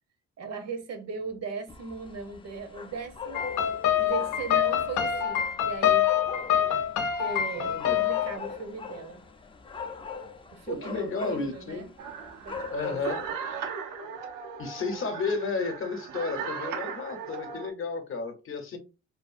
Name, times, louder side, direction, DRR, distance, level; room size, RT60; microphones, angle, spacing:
voice 1, 0.4-3.5 4.0-6.1 7.2-9.2 10.5-11.9 12.4-13.0, right 5 dB, 55° right, 0.7 m, -38 dB
sound 1, 1.7-13.3, left 5 dB, 20° left, 0.4 m, -41 dB
sound 2, 3.3-8.4, left 10 dB, 90° left, 0.6 m, -26 dB
voice 2, 7.5-8.0 10.7-11.8 12.7-13.2 14.6-18.8, left 4 dB, 45° left, 0.7 m, -32 dB
sound 3, 12.0-17.7, right 6 dB, 85° right, 0.5 m, -37 dB
2.6 x 2.4 x 2.4 m
cardioid pair, 90°, 30 cm